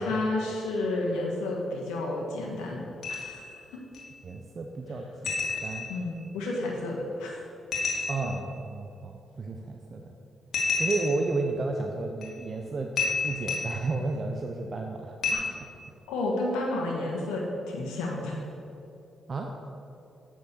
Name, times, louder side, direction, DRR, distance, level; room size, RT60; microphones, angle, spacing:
voice 1, 0.0-3.5 5.9-7.4 16.1-18.4, left 2 dB, 85° left, -2 dB, 1.5 m, -31 dB
sound 1, 3.0-3.5 3.9-4.0 5.2-6.1 7.7-8.4 10.5-11.3 12.2-12.4 13.0-13.9 15.2-15.3, left 4 dB, 65° left, 2.4 m, -30 dB
voice 2, 4.2-5.9 8.1-10.1 10.8-12.9 13.2-15.2 19.3-19.5, right 3 dB, 50° right, 3 dB, 0.8 m, -32 dB
8.1 x 6.2 x 6.9 m, 2.8 s
supercardioid pair, 45°, 0 cm